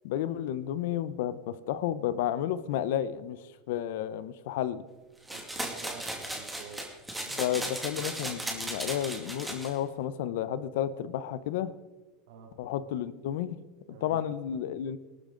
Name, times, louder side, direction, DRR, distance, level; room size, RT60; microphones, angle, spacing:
voice 1, 0.0-3.4 3.7-4.8 7.3-11.7 12.6-13.6 14.0-15.0, left 11 dB, 80° left, 0.8 m, -32 dB
sound 1, 5.3-9.7, right 1 dB, 5° right, 2.3 m, -36 dB
voice 2, 5.3-6.9 12.3-12.5 13.9-14.2, right 5 dB, 75° right, 2.5 m, -47 dB
19.0 x 13.0 x 3.9 m
supercardioid pair, 145°, 0 cm